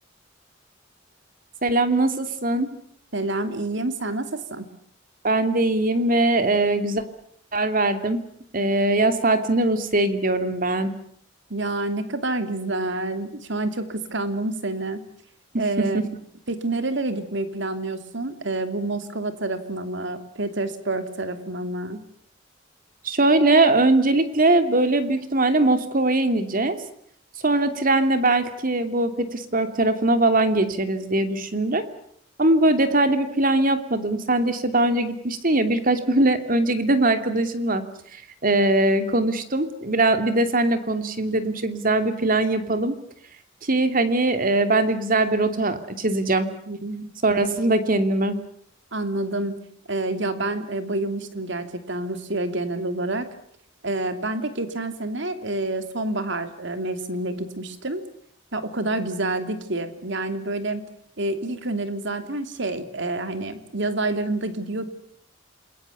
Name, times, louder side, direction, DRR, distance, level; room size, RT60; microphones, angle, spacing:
voice 1, 1.6-2.7 5.2-7.0 7.5-8.2 8.5-10.9 15.5-16.1 23.0-26.8 27.4-31.8 32.4-37.8 38.1-42.9 43.6-46.5 47.2-48.4, right 2 dB, 45° right, 8 dB, 2.8 m, -21 dB
voice 2, 3.1-4.7 11.5-15.0 15.6-16.0 16.5-22.0 46.7-47.1 48.9-49.6 49.9-53.3 53.8-58.0 58.5-60.9 61.2-64.8, right 2 dB, 65° right, 9 dB, 2.9 m, -28 dB
28.0 x 21.5 x 8.4 m, 0.66 s
head